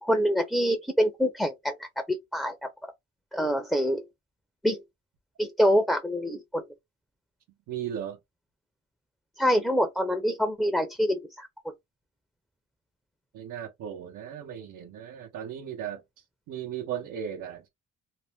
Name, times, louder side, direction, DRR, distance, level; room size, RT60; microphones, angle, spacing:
voice 1, 0.0-2.5 3.3-4.0 4.6-4.8 5.4-6.6 9.4-11.5, equal, ahead, 0.6 m, -25 dB
voice 2, 7.7-8.2 13.3-16.0 16.5-17.7, right 9 dB, 90° right, 0.9 m, -36 dB
2.7 x 2.1 x 3.4 m
cardioid pair, 90°, 30 cm